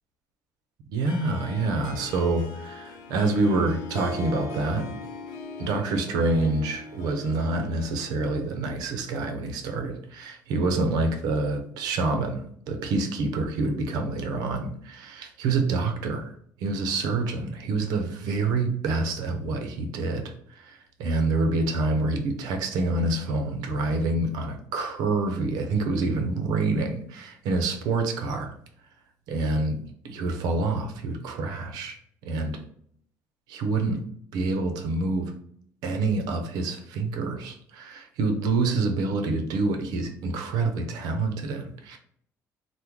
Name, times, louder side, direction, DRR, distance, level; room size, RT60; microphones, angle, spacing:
voice 1, 0.9-5.0 5.6-16.3 16.6-28.5 29.3-32.0 32.2-32.6 33.5-34.0 34.3-35.3 35.8-42.0, right 3 dB, 85° right, 5 dB, 0.6 m, -27 dB
Harp, 1.0-8.8, left 3 dB, 90° left, 0.5 m, -40 dB
3.5 x 2.1 x 3.0 m, 0.66 s
cardioid pair, 145°, 7 cm